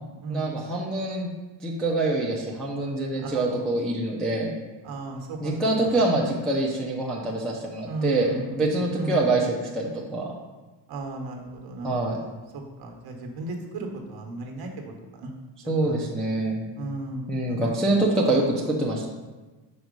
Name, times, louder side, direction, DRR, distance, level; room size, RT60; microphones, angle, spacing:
voice 1, 0.3-1.3 1.6-4.5 5.4-10.3 11.8-12.2 15.7-16.6 17.3-19.1, right 2 dB, ahead, -4 dB, 0.4 m, -25 dB
voice 2, 4.8-5.5 7.8-8.4 9.0-9.2 10.9-12.3 12.8-15.3 15.8-15.9 16.8-17.6, right 2 dB, 50° right, 2 dB, 1.1 m, -35 dB
5.3 x 4.6 x 5.1 m, 1.2 s
cardioid pair, 165°, 49 cm